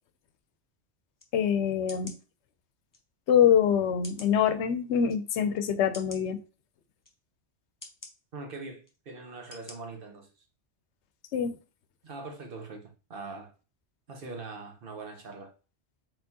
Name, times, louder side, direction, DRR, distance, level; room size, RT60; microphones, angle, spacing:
sound 1, 1.2-1.3 1.9-2.2 2.9-3.0 4.0-4.4 5.1-5.2 5.9-6.2 7.0-7.1 7.8-8.1 8.8-9.0 9.5-9.8 10.2-10.3, left 2 dB, 20° left, 0.6 m, -46 dB
voice 1, 1.3-2.1 3.3-6.4 11.3-11.6, left 8 dB, 75° left, 0.9 m, -24 dB
voice 2, 8.3-10.3 12.0-13.5 14.1-15.5, right 3 dB, 55° right, 1.2 m, -42 dB
4.3 x 3.8 x 2.8 m
omnidirectional pair, 1.2 m